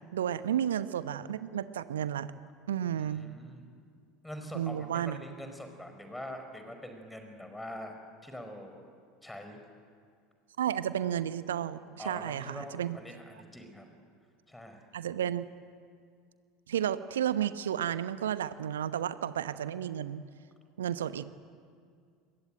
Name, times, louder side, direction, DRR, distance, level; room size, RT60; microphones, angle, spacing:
voice 1, 0.1-2.3 2.7-3.2 4.5-5.2 10.6-13.0 14.9-15.4 16.7-20.2 20.8-21.3, right 10 dB, 70° right, 13 dB, 1.0 m, -32 dB
voice 2, 3.0-3.7 4.2-7.9 8.2-8.8 9.2-9.6 12.0-13.9 14.5-14.8, left 1 dB, 5° left, 6 dB, 5.2 m, -44 dB
27.5 x 22.0 x 9.1 m, 2.2 s
figure-of-eight pair, 75°, 0 cm